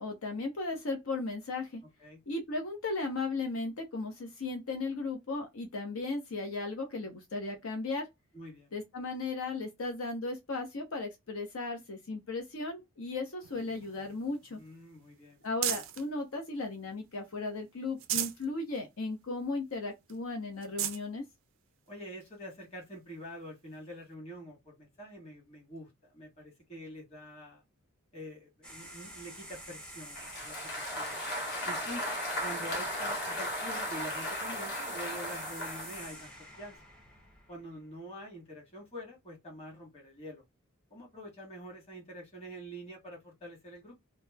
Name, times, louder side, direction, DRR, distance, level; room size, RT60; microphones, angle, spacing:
voice 1, 0.0-1.8 2.3-8.1 8.7-14.6 15.4-21.3, left 3 dB, 75° left, 0.7 m, -36 dB
voice 2, 8.3-8.7 14.6-15.4 21.9-27.6 28.1-31.1 31.6-32.0 32.4-36.8 37.5-40.4 40.9-44.0, equal, 30° left, 1.3 m, -46 dB
sound 1, 13.4-16.1 16.6-17.4 17.8-18.5 18.9-19.0 19.4-19.5 20.1-20.2 20.6-21.0 21.9-22.0 23.7-23.8, right 11 dB, 65° right, 0.4 m, -37 dB
sound 2, 28.6-37.8, right 1 dB, 5° left, 0.6 m, -46 dB
Applause, 30.2-36.2, left 1 dB, 50° left, 1.0 m, -36 dB
2.9 x 2.0 x 2.2 m
head